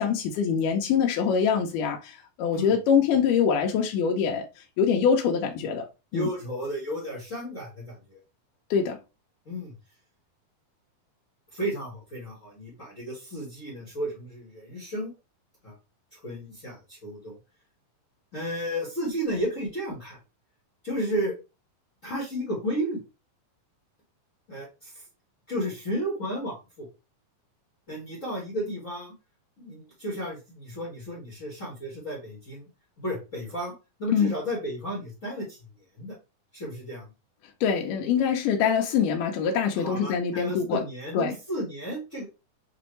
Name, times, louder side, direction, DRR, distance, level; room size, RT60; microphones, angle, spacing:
voice 1, 0.0-4.5 4.8-5.9 6.1-6.3 8.7-9.0 34.1-34.3 37.6-40.8 41.1-41.3, left 7 dB, 75° left, 2.0 m, -24 dB
voice 2, 6.1-8.2 9.4-9.7 11.5-15.1 15.6-15.7 16.1-17.3 18.3-20.2 20.8-21.3 22.0-23.0 24.5-25.0 25.5-26.9 27.9-29.1 29.6-32.6 33.0-33.7 34.0-35.6 36.0-36.2 36.5-37.1 39.7-42.2, equal, 55° left, 0.8 m, -33 dB
6.1 x 2.6 x 3.1 m
omnidirectional pair, 4.3 m